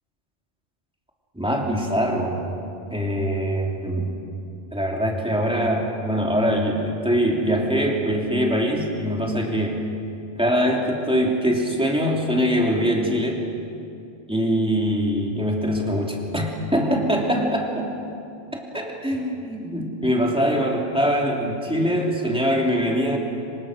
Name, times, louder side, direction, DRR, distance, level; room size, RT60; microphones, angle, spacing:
voice 1, 1.3-2.5 2.9-4.1 4.7-9.8 10.4-13.4 14.3-17.9 18.5-23.2, equal, 5° right, -1 dB, 3.2 m, -23 dB
26.0 x 25.5 x 6.4 m, 2.6 s
omnidirectional pair, 1.1 m